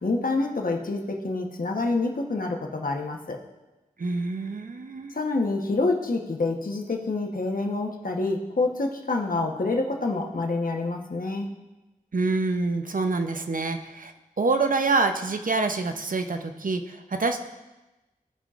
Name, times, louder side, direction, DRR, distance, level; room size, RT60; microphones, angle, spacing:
voice 1, 0.0-3.4 5.1-11.5, left 3 dB, 65° left, 1 dB, 1.1 m, -27 dB
voice 2, 4.0-5.1 12.1-14.1 14.4-17.4, right 3 dB, 65° right, 6 dB, 0.7 m, -26 dB
16.5 x 5.6 x 2.5 m, 1.1 s
wide cardioid pair, 50°, 15 cm